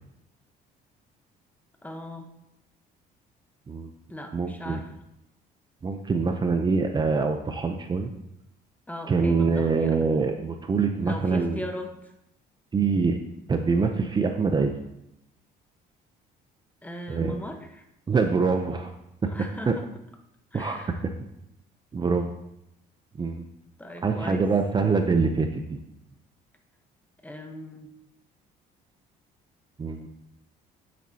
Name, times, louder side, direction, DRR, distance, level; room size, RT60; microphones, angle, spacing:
voice 1, 1.8-2.3 4.1-4.9 8.9-10.0 11.0-12.1 16.8-17.8 19.2-19.8 20.5-21.0 23.8-24.4 27.2-27.9, equal, 10° left, 4 dB, 1.1 m, -38 dB
voice 2, 4.3-4.8 5.8-8.1 9.1-11.6 12.7-13.2 13.5-14.7 17.1-17.3 18.1-18.9 19.2-19.3 19.7-19.8 20.5-20.9 21.9-22.3 23.2-23.4 24.0-25.8 29.8-30.1, right 4 dB, 25° right, 5 dB, 0.6 m, -24 dB
9.2 x 8.4 x 2.8 m, 0.82 s
cardioid pair, 110°, 17 cm